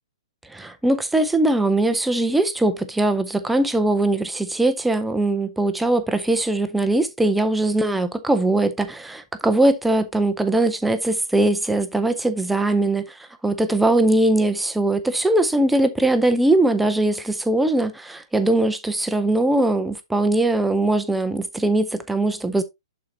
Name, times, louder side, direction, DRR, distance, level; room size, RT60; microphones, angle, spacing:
voice 1, 0.4-22.6, right 2 dB, ahead, 0.4 m, -21 dB
11.5 x 4.2 x 2.6 m
hypercardioid pair, 175°, 3 cm